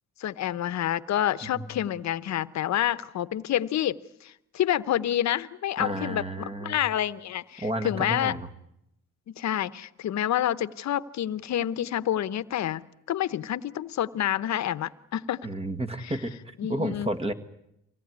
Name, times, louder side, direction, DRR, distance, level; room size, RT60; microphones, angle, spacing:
voice 1, 0.2-8.4 9.3-15.5 16.0-16.1 16.6-17.1, left 11 dB, 65° left, 15 dB, 0.9 m, -28 dB
voice 2, 5.8-6.8 7.6-8.5 15.4-17.3, right 1 dB, 20° right, 10 dB, 1.9 m, -31 dB
24.0 x 18.0 x 9.6 m, 0.82 s
cardioid pair, 90°, 30 cm